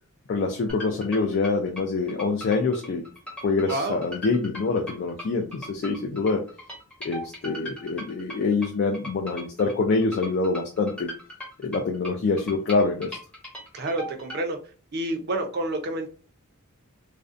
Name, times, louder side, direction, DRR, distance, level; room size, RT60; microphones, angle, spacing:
voice 1, 0.3-3.0 3.4-6.4 7.0-11.1 11.6-13.2, left 4 dB, 50° left, 0.3 m, -25 dB
sound 1, 0.7-14.4, equal, 5° left, 0.6 m, -39 dB
voice 2, 3.7-4.0 13.7-14.6 14.9-16.1, right 1 dB, 50° right, 0.5 m, -28 dB
2.5 x 2.1 x 2.4 m
head